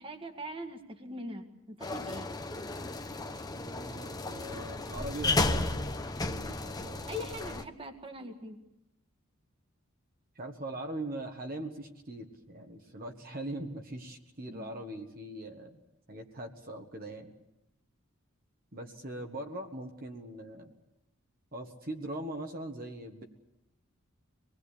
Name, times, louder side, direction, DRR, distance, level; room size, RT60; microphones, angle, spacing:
voice 1, 0.0-2.3 7.1-8.6 14.5-14.8, equal, 25° right, 6 dB, 1.8 m, -42 dB
sound 1, 1.8-7.6, left 2 dB, 20° left, 0.9 m, -33 dB
voice 2, 3.6-5.9 6.2-7.1 10.3-15.8 16.1-17.3 18.7-20.7 21.5-23.2, right 1 dB, 45° right, 3 dB, 1.6 m, -41 dB
25.0 x 20.0 x 8.5 m, 0.90 s
head